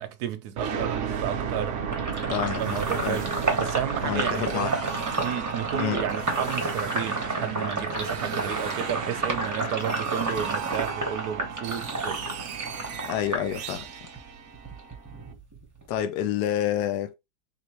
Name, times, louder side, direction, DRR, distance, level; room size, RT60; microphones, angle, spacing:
voice 1, 0.0-1.8 2.6-4.8 5.2-12.2, right 9 dB, 70° right, 1.0 m, -32 dB
sound 1, 0.6-15.2, right 7 dB, 85° right, 0.6 m, -34 dB
Sink (filling or washing), 1.9-14.2 14.5-16.0, right 2 dB, 15° right, 0.7 m, -31 dB
voice 2, 2.3-3.2 4.0-4.7 5.7-6.0 13.1-13.9 15.9-17.1, left 10 dB, 70° left, 1.1 m, -28 dB
3.8 x 3.8 x 3.0 m
omnidirectional pair, 2.1 m